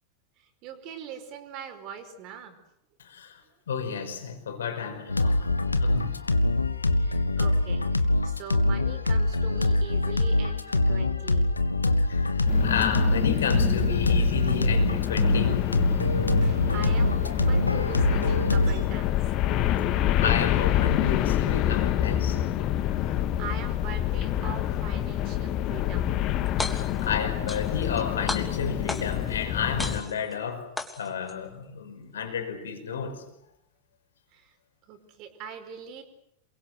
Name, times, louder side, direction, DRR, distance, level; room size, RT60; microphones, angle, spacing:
voice 1, 0.4-2.6 6.1-6.2 7.0-11.5 16.4-19.3 22.9-26.1 34.3-34.6 34.8-36.0, right 7 dB, 40° right, 7 dB, 5.0 m, -42 dB
voice 2, 3.0-3.4 3.7-5.5 5.8-6.3 12.0-15.7 20.2-22.4 27.0-30.7 31.0-33.2, left 6 dB, 65° left, 6 dB, 5.1 m, -31 dB
sound 1, 5.1-18.8, left 2 dB, 80° left, 1.7 m, -24 dB
sound 2, 12.5-30.0, left 12 dB, 40° left, 2.0 m, -27 dB
sound 3, 26.5-27.1 27.5-28.0 28.3-29.3 29.8-30.3 30.8-31.3, left 2 dB, 10° left, 3.2 m, -34 dB
28.5 x 23.0 x 8.1 m, 0.79 s
figure-of-eight pair, 90°, 0 cm